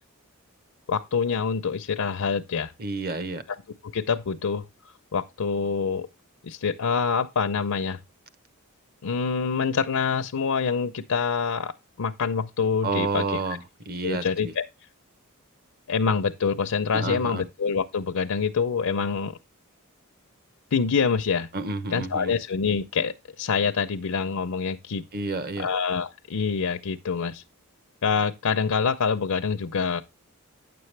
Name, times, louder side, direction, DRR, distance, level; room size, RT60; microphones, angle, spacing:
voice 1, 0.9-2.7 3.8-4.6 5.1-6.1 6.4-8.0 9.0-11.7 12.0-13.4 14.0-14.6 15.9-19.3 20.7-21.5 21.9-25.0 25.6-27.4 28.0-30.0, left 5 dB, 90° left, 0.6 m, -26 dB
voice 2, 2.8-3.4 12.8-13.6 13.9-14.5 16.9-17.4 21.5-22.3 25.1-25.7, right 3 dB, 45° right, 0.9 m, -29 dB
9.4 x 6.8 x 3.2 m
head